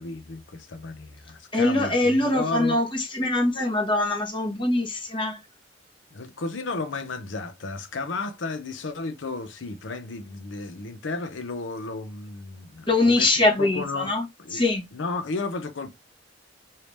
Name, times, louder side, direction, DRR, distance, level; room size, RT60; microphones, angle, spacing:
voice 1, 0.0-2.8 6.1-14.1 14.4-14.6 14.9-15.9, left 3 dB, 70° left, 0.6 m, -33 dB
voice 2, 1.5-5.4 12.9-14.2 14.5-14.8, left 2 dB, 25° left, 1.1 m, -23 dB
3.3 x 2.8 x 3.0 m
head